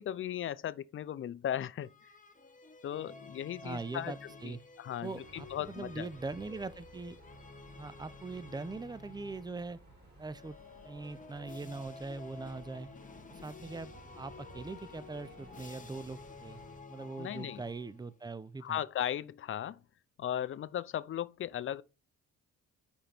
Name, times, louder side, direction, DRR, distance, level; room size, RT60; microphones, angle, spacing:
voice 1, 0.0-1.9 2.8-4.1 4.4-6.1 17.2-17.6 18.6-19.8 20.2-21.8, left 10 dB, 45° left, 0.5 m, -37 dB
sound 1, 1.8-9.7 10.3-18.2, left 4 dB, 25° left, 1.1 m, -51 dB
voice 2, 3.6-4.6 5.0-7.2 7.8-9.8 10.2-10.6 10.8-12.9 13.3-16.6 16.9-18.8, right 3 dB, 15° right, 0.5 m, -42 dB
sound 2, 5.0-16.8, right 1 dB, 35° right, 3.2 m, -57 dB
5.2 x 5.0 x 4.3 m
cardioid pair, 90°, 30 cm